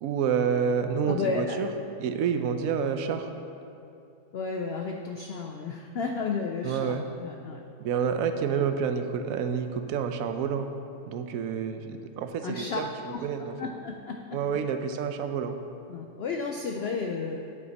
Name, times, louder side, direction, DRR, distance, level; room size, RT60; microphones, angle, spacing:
voice 1, 0.0-1.7 2.0-3.3 6.6-7.0 7.8-10.7 11.1-12.9 13.2-13.5 14.3-15.6, right 7 dB, 70° right, 8 dB, 1.0 m, -28 dB
voice 2, 1.1-1.6 4.3-7.6 12.4-14.6 15.9-17.4, left 4 dB, 85° left, 3 dB, 0.5 m, -33 dB
8.7 x 8.3 x 4.1 m, 2.6 s
omnidirectional pair, 1.7 m